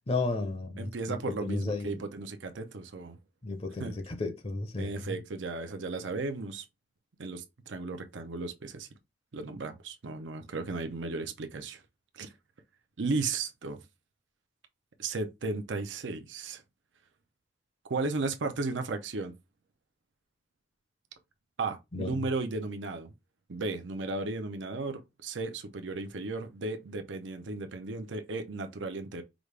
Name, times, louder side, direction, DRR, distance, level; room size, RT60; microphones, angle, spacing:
voice 1, 0.1-2.0 3.4-5.2 21.9-22.2, left 3 dB, 35° left, 0.6 m, -33 dB
voice 2, 0.8-3.2 3.8-3.9 4.8-6.6 7.2-8.9 9.3-11.8 12.1-12.3 13.0-13.8 15.0-16.6 17.9-19.3 21.6-23.1 23.5-29.2, right 3 dB, 90° right, 0.6 m, -35 dB
5.0 x 2.4 x 3.2 m
head